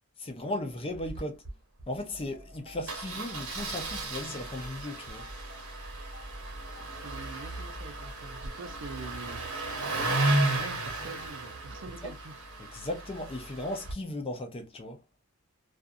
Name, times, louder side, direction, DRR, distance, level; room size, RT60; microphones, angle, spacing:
voice 1, 0.2-1.4 1.9-5.3 12.0-12.1 12.7-15.0, left 1 dB, 25° left, 0.5 m, -36 dB
Engine starting, 0.9-1.2 1.4-1.5 1.8-2.0 2.9-13.9, right 2 dB, 75° right, 0.9 m, -34 dB
sound 1, 2.1-11.3, equal, 60° left, 0.9 m, -51 dB
voice 2, 6.9-9.4 10.3-12.3, right 3 dB, 60° right, 0.5 m, -44 dB
2.5 x 2.4 x 2.5 m
head